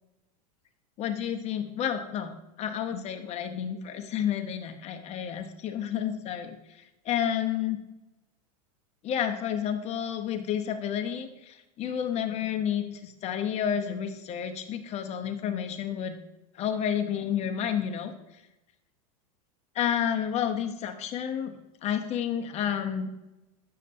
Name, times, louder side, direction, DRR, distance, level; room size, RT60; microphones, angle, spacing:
voice 1, 1.0-2.3 2.6-6.6 7.0-7.8 9.0-16.2 16.6-18.1 19.7-21.5 21.8-23.1, left 9 dB, 35° left, 6 dB, 0.9 m, -30 dB
9.2 x 6.6 x 2.7 m, 0.99 s
hypercardioid pair, 115°, 19 cm